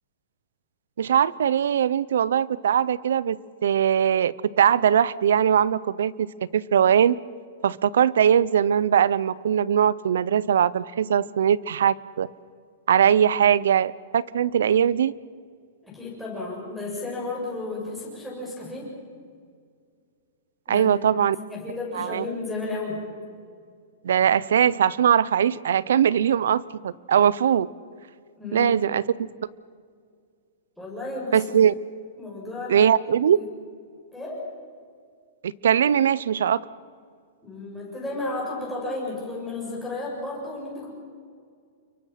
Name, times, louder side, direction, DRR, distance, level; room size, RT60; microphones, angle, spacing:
voice 1, 1.0-3.4 3.6-6.3 6.5-7.2 7.6-12.3 12.9-15.1 20.7-21.4 21.9-22.2 24.0-27.7 28.5-29.0 31.3-31.7 32.7-33.4 35.4-36.6, right 9 dB, 85° right, 21 dB, 0.7 m, -21 dB
voice 2, 15.8-19.0 20.7-23.1 28.4-28.8 30.8-31.5 32.2-32.9 33.3-33.4 34.1-34.5 37.4-40.9, left 2 dB, ahead, -6 dB, 7.7 m, -33 dB
30.0 x 23.5 x 5.9 m, 2.1 s
supercardioid pair, 165°, 0 cm